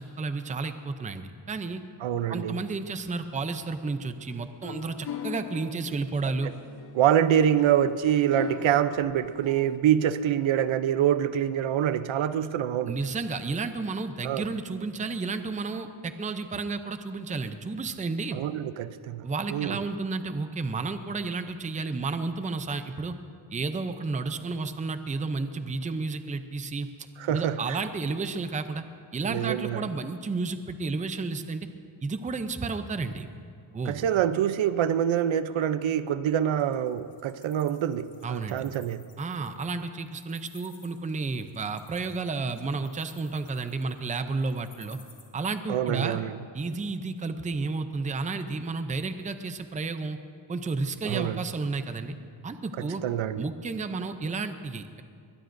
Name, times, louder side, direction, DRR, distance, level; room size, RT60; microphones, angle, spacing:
voice 1, 0.0-1.8 2.3-6.5 12.9-18.4 19.2-23.2 23.5-28.8 29.1-31.7 32.0-33.3 33.7-34.0 38.2-38.6 39.2-45.0 45.3-46.2 46.5-50.2 50.5-52.2 52.4-53.0 53.4-55.0, right 3 dB, 15° right, 9 dB, 0.5 m, -32 dB
voice 2, 2.0-2.6 6.9-13.0 14.2-14.4 18.3-19.8 27.2-27.8 29.2-29.8 33.9-39.1 45.7-46.3 51.0-51.4 52.8-53.5, right 10 dB, 75° right, 13 dB, 0.7 m, -25 dB
sound 1, 4.3-9.8, left 7 dB, 55° left, 1.1 m, -41 dB
Wild animals, 36.6-45.2, left 4 dB, 35° left, 2.4 m, -55 dB
22.0 x 20.0 x 2.6 m, 2.3 s
wide cardioid pair, 165°, 47 cm